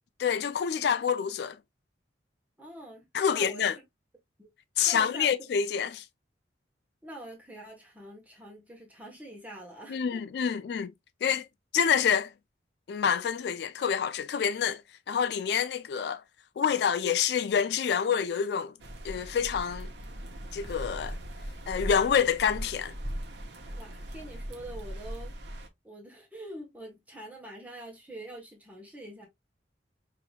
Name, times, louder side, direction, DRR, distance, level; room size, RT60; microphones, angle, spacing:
voice 1, 0.2-1.6 3.1-3.7 4.8-6.0 9.9-10.9 11.2-11.5 11.7-12.3 12.9-14.8 15.1-16.2 16.6-18.7 19.0-19.9 20.5-21.2 21.7-22.9, left 7 dB, 60° left, 0.3 m, -27 dB
voice 2, 2.6-3.8 4.4-4.5 4.8-5.5 7.0-10.6 23.7-25.4 25.8-29.3, right 1 dB, 10° right, 1.1 m, -45 dB
sound 1, 18.8-25.7, equal, 70° right, 0.8 m, -39 dB
5.6 x 2.8 x 2.3 m
head